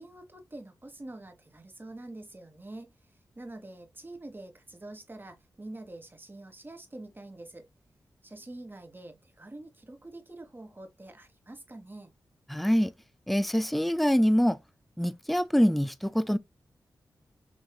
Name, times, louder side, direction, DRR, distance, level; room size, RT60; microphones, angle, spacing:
voice 1, 0.0-2.9 3.3-7.7 8.2-12.1, right 2 dB, 30° right, 1.4 m, -45 dB
voice 2, 12.5-12.9 13.3-14.6 15.0-16.4, equal, ahead, 0.4 m, -24 dB
6.3 x 3.1 x 2.3 m
cardioid pair, 45°, 8 cm